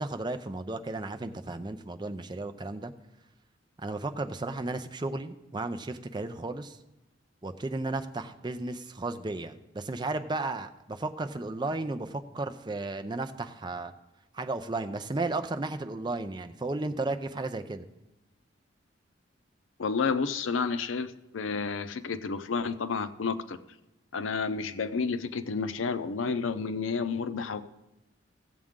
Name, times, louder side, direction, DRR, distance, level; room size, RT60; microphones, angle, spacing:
voice 1, 0.0-2.9 3.8-6.8 7.4-13.9 14.3-17.8, right 2 dB, 25° right, 8 dB, 0.5 m, -34 dB
voice 2, 19.8-23.6 24.1-27.6, left 5 dB, 90° left, 12 dB, 0.6 m, -30 dB
15.5 x 7.5 x 3.7 m, 0.94 s
head